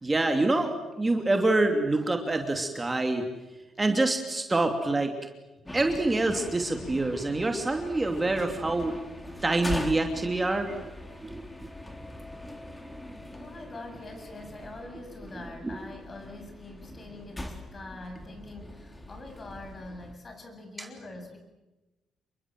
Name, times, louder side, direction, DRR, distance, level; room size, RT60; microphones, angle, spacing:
voice 1, 0.0-3.3 3.8-5.1 5.7-8.9 9.4-10.9 11.2-11.7 15.6-15.8, right 2 dB, 20° right, 4 dB, 2.8 m, -26 dB
sound 1, 5.7-20.1, left 1 dB, 10° left, 3.8 m, -42 dB
voice 2, 13.3-21.4, left 2 dB, 35° left, 5 dB, 7.6 m, -44 dB
28.5 x 23.0 x 7.7 m, 1.1 s
cardioid pair, 90°, 0 cm